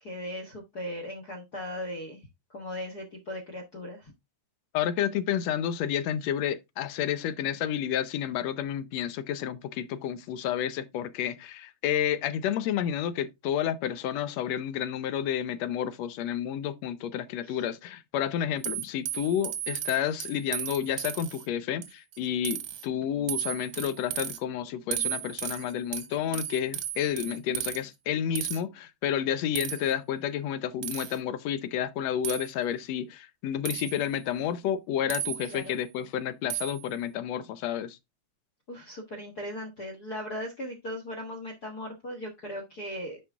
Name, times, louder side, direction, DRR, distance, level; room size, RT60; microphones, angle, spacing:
voice 1, 0.0-4.1 17.4-17.6 35.5-35.8 38.7-43.2, equal, 45° left, 1.4 m, -38 dB
voice 2, 4.7-38.0, left 9 dB, 75° left, 1.8 m, -30 dB
sound 1, 18.6-21.4 21.8-22.2 22.4-22.8 23.3-24.4 24.9-27.8 28.4-28.6 29.6-29.9 30.8-31.2 32.2-32.5 33.7-34.1 35.1-35.7 36.5-36.9, right 11 dB, 55° right, 1.4 m, -35 dB
9.7 x 4.8 x 3.6 m
omnidirectional pair, 3.3 m